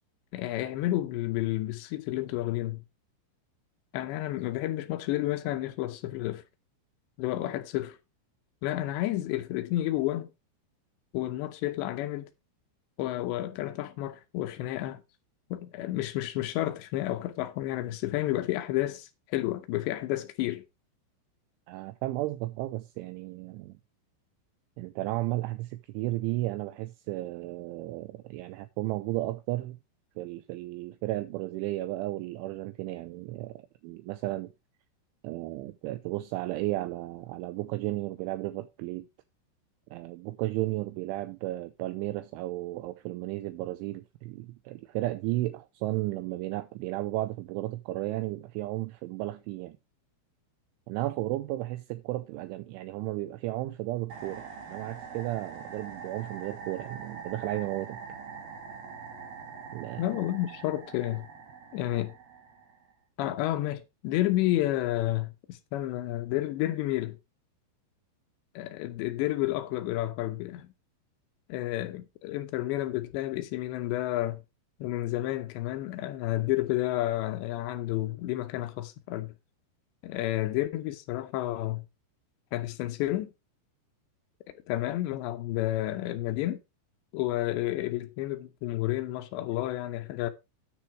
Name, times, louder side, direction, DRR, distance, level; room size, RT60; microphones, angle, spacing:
voice 1, 0.3-2.8 3.9-6.4 7.2-8.0 8.6-10.3 11.1-12.3 13.0-15.0 15.5-20.6 60.0-61.3 61.7-62.1 63.2-67.2 68.6-70.7 71.5-74.4 74.8-79.3 80.0-81.9 82.5-83.3 84.7-86.6 87.1-90.3, left 15 dB, 80° left, 2.6 m, -31 dB
voice 2, 21.7-23.8 24.8-29.8 30.2-34.5 35.2-39.1 39.9-49.8 50.9-58.0 59.7-60.0, right 17 dB, 85° right, 2.8 m, -34 dB
sound 1, 54.1-62.9, right 5 dB, 65° right, 1.6 m, -44 dB
9.8 x 6.0 x 4.7 m
omnidirectional pair, 5.9 m